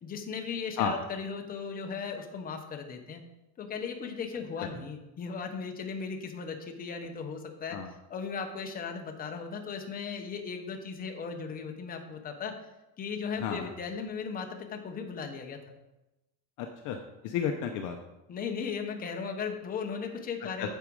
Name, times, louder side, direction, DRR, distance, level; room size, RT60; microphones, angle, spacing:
voice 1, 0.0-3.2 3.6-7.8 8.1-12.6 13.0-15.8 18.3-20.7, left 5 dB, 20° left, 3 dB, 1.0 m, -37 dB
voice 2, 13.4-13.7 16.6-17.0 17.2-18.0 20.6-20.7, left 7 dB, 45° left, 4 dB, 0.8 m, -32 dB
9.1 x 7.4 x 4.8 m, 0.97 s
cardioid pair, 165°, 46 cm